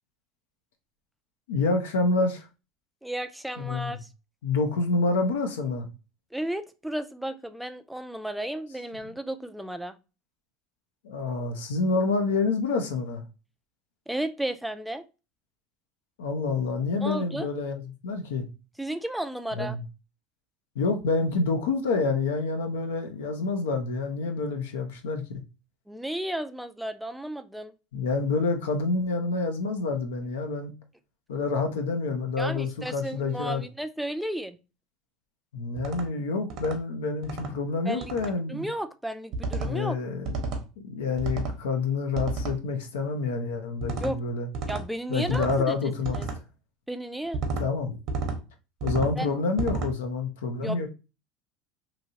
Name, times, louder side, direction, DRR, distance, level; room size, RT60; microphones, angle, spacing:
voice 1, 1.5-2.5 3.6-4.0 4.4-5.9 9.1-9.2 11.0-13.2 16.2-18.5 19.6-19.8 20.7-25.2 27.9-30.7 31.3-33.6 35.5-38.7 39.6-40.6 40.8-44.5 45.1-46.2 47.6-48.0 48.8-50.9, left 3 dB, 85° left, 0.6 m, -28 dB
voice 2, 3.0-4.1 6.3-9.9 14.1-15.1 17.0-17.5 18.8-19.8 25.9-27.7 32.4-34.6 37.9-38.1 38.5-40.0 44.0-44.2 44.7-45.7 46.1-46.3 46.9-47.4 49.2-49.4 50.6-50.9, right 1 dB, 5° right, 0.3 m, -33 dB
sound 1, 35.8-36.1 36.5-36.8 37.2-37.5 38.0-38.3 39.3-39.7 40.3-40.6 41.2-41.6 42.2-42.6 43.8-44.1 44.5-44.9 45.3-45.6 46.0-46.4 47.3-47.7 48.1-48.4 48.8-49.1 49.6-49.9, right 3 dB, 60° right, 0.9 m, -31 dB
2.9 x 2.7 x 2.7 m
hypercardioid pair, 90°, 0 cm